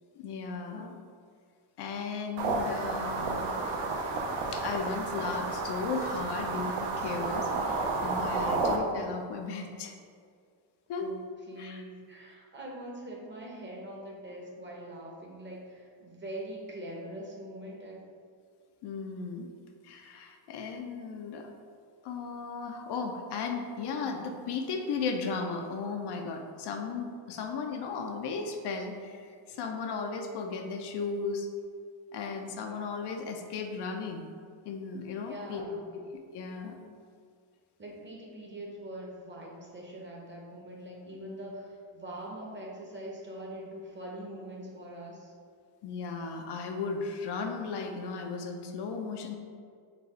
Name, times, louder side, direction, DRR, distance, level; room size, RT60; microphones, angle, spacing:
voice 1, 0.2-0.9 1.8-3.4 4.5-10.0 10.9-11.1 11.6-11.8 18.8-19.5 19.8-21.5 22.0-31.5 32.1-34.3 34.6-35.6 36.3-36.8 45.8-49.3, left 4 dB, 60° left, 3 dB, 0.5 m, -36 dB
sound 1, 2.4-8.8, right 3 dB, 65° right, 0.7 m, -31 dB
voice 2, 11.5-18.0 35.3-35.9 37.8-45.3, right 1 dB, 25° right, -2 dB, 0.7 m, -43 dB
4.1 x 2.3 x 4.1 m, 2.1 s
cardioid pair, 115°, 47 cm